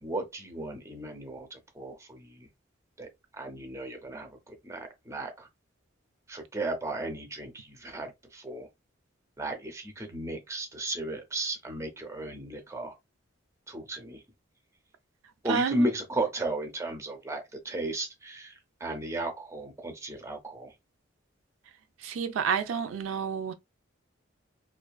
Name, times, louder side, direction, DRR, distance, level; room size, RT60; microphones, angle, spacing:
voice 1, 0.0-2.5 3.0-3.1 3.4-5.5 6.3-8.7 9.4-12.9 13.7-14.2 15.4-18.5 18.8-20.7, right 1 dB, 15° right, 0.4 m, -35 dB
voice 2, 15.4-15.9 22.0-23.5, right 6 dB, 75° right, 0.3 m, -29 dB
2.4 x 2.3 x 2.3 m
head